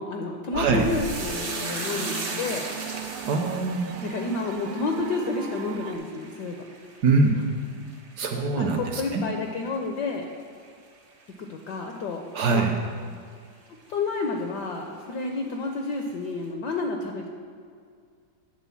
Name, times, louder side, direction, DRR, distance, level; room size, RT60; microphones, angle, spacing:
voice 1, 0.0-2.7 4.0-6.7 8.6-10.3 11.4-12.2 12.5-12.7 13.9-17.3, left 3 dB, 70° left, 2 dB, 1.0 m, -30 dB
voice 2, 0.5-0.8 3.3-3.9 7.0-7.4 8.2-9.2 12.3-12.7, right 4 dB, 70° right, 3 dB, 1.0 m, -23 dB
sound 1, 0.5-6.0, right 6 dB, 90° right, 1.5 m, -36 dB
sound 2, 0.8-9.4 9.7-10.3 10.6-10.9, right 3 dB, 50° right, 0.6 m, -38 dB
9.2 x 3.8 x 7.0 m, 2.2 s
omnidirectional pair, 2.4 m